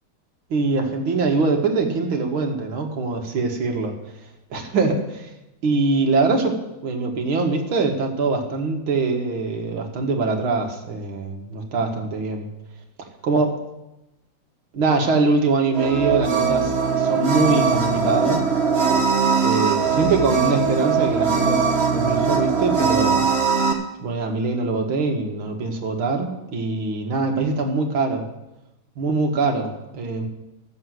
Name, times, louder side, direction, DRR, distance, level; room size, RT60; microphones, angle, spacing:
voice 1, 0.5-4.0 4.5-5.3 5.6-12.5 13.2-13.6 14.7-18.5 19.4-23.3 24.0-28.3 29.0-30.3, right 3 dB, 75° right, 3 dB, 2.4 m, -23 dB
sound 1, 15.7-23.7, right 5 dB, 35° right, 1.5 m, -20 dB
14.5 x 7.0 x 7.7 m, 0.94 s
omnidirectional pair, 2.3 m